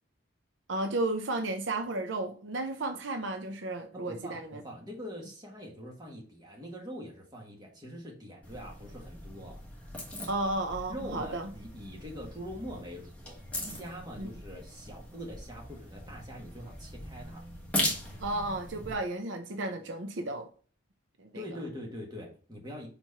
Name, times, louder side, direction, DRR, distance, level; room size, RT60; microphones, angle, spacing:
voice 1, 0.7-4.6 10.3-11.5 14.2-14.3 18.2-20.5 21.2-21.4, right 2 dB, 70° right, 7 dB, 0.7 m, -33 dB
voice 2, 3.9-9.6 10.9-17.4 21.3-22.9, equal, 20° right, -1 dB, 1.7 m, -43 dB
sound 1, 8.4-18.9, left 1 dB, 5° left, 1.3 m, -39 dB
5.2 x 4.6 x 4.1 m, 0.40 s
head